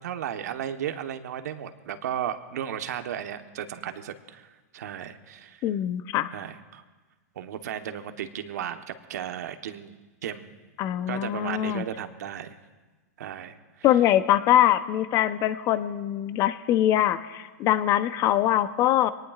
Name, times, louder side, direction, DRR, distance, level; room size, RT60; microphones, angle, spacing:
voice 1, 0.0-5.6 6.3-6.8 7.3-9.9 10.2-10.5 11.1-12.6 13.2-13.9, right 9 dB, 75° right, 8 dB, 1.2 m, -35 dB
voice 2, 5.6-6.3 10.8-11.8 13.8-19.1, left 12 dB, 35° left, 13 dB, 0.7 m, -23 dB
24.5 x 19.0 x 2.5 m, 1.3 s
hypercardioid pair, 130°, 9 cm